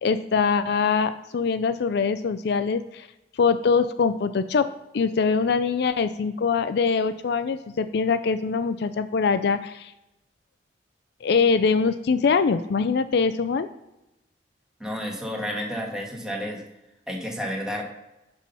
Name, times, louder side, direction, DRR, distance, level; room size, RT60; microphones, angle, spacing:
voice 1, 0.0-3.1 3.4-4.7 4.9-9.9 11.2-13.7, left 5 dB, 65° left, 11 dB, 0.4 m, -23 dB
voice 2, 14.8-16.6 17.1-17.8, equal, 5° right, -1 dB, 1.8 m, -31 dB
9.7 x 3.7 x 5.6 m, 0.94 s
head